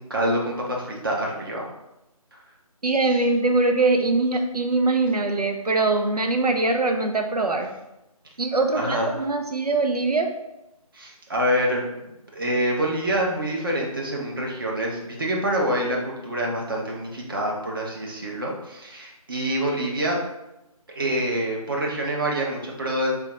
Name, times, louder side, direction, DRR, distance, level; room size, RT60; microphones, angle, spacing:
voice 1, 0.0-1.6 8.7-9.2 10.9-20.2 20.9-23.1, right 1 dB, 35° right, -2 dB, 0.8 m, -26 dB
voice 2, 2.8-7.7 8.4-10.3, right 3 dB, 90° right, 4 dB, 0.7 m, -22 dB
3.6 x 3.4 x 2.9 m, 0.92 s
figure-of-eight pair, 160°, 19 cm